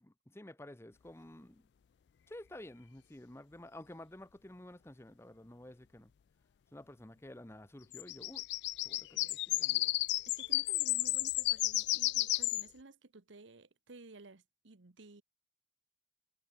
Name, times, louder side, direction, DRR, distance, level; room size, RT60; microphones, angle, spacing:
voice 1, 0.0-1.7 2.3-6.1 6.7-8.4 8.8-9.9, left 1 dB, 15° left, 0.8 m, -51 dB
sound 1, 7.9-12.7, left 19 dB, 65° left, 0.3 m, -32 dB
voice 2, 10.3-15.2, right 3 dB, 80° right, 1.2 m, -55 dB
head